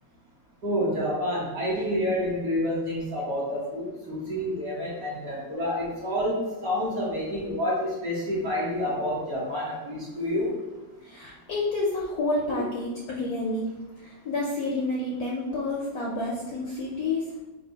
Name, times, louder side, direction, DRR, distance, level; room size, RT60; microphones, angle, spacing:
voice 1, 0.6-10.5, equal, 50° right, -6 dB, 1.3 m, -28 dB
voice 2, 11.0-13.7 14.0-17.3, left 2 dB, 70° left, -4 dB, 0.9 m, -29 dB
4.1 x 2.2 x 4.5 m, 1.1 s
omnidirectional pair, 2.1 m